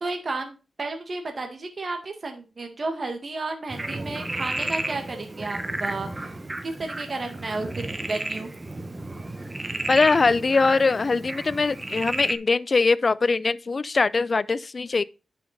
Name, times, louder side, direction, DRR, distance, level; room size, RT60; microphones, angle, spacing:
voice 1, 0.0-8.5, right 3 dB, 45° right, 1.8 m, -32 dB
Frog, 3.7-12.4, right 2 dB, 25° right, 1.3 m, -32 dB
voice 2, 9.9-15.0, left 4 dB, 45° left, 0.5 m, -22 dB
9.9 x 5.8 x 4.1 m
cardioid pair, 85°, 0 cm